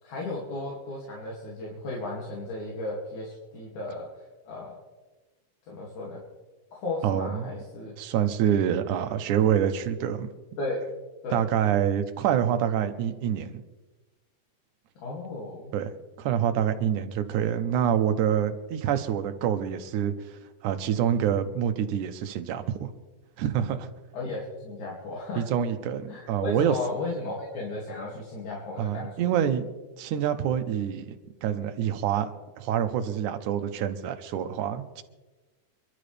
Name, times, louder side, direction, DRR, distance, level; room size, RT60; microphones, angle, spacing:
voice 1, 0.0-4.1 4.5-4.8 5.7-6.2 6.7-7.9 10.6-10.9 11.2-11.4 15.0-15.7 24.1-25.4 26.1-29.3, left 2 dB, 70° left, -4 dB, 4.0 m, -34 dB
voice 2, 7.0-7.5 8.0-10.3 11.3-13.6 15.7-15.9 16.2-22.9 23.4-23.9 25.4-26.8 28.8-29.7 30.0-35.0, right 9 dB, 75° right, 9 dB, 2.4 m, -26 dB
27.0 x 12.0 x 3.4 m, 1.2 s
omnidirectional pair, 3.6 m